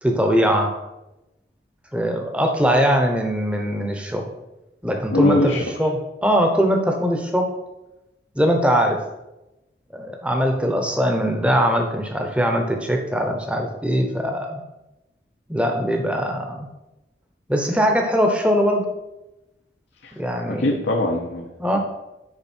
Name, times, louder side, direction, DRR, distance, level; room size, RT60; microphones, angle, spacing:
voice 1, 0.0-0.7 1.9-4.3 4.8-5.5 5.8-7.5 8.3-9.0 9.9-14.6 15.5-16.7 17.5-18.9 20.2-20.8 21.6-21.8, equal, 5° right, 3 dB, 0.9 m, -21 dB
voice 2, 5.1-5.6 20.0-20.1 20.4-21.5, left 1 dB, 80° left, 0 dB, 0.8 m, -21 dB
8.7 x 5.4 x 4.5 m, 0.96 s
head